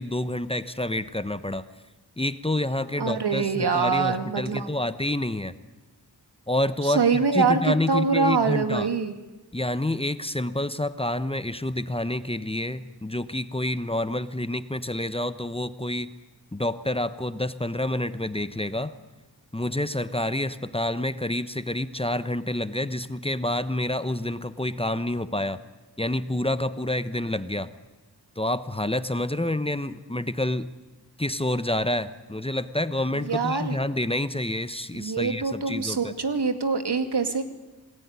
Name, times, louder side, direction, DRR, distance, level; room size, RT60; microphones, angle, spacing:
voice 1, 0.0-1.6 2.2-5.5 6.5-8.9 9.5-16.1 16.5-18.9 19.5-25.6 26.0-27.7 28.4-30.7 31.2-36.1, left 1 dB, 15° left, 12 dB, 1.1 m, -28 dB
voice 2, 3.0-4.7 6.8-9.1 33.1-33.8 34.9-37.4, right 4 dB, 75° right, 8 dB, 2.4 m, -24 dB
27.5 x 19.0 x 9.7 m, 1.1 s
wide cardioid pair, 70°, 40 cm